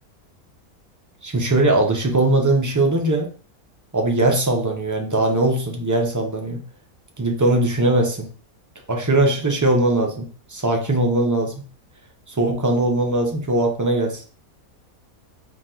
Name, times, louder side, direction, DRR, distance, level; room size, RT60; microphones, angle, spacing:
voice 1, 1.2-3.3 3.9-6.6 7.2-8.3 8.9-11.6 12.3-14.2, right 2 dB, 20° right, 1 dB, 0.6 m, -20 dB
4.6 x 2.8 x 3.8 m, 0.40 s
omnidirectional pair, 1.5 m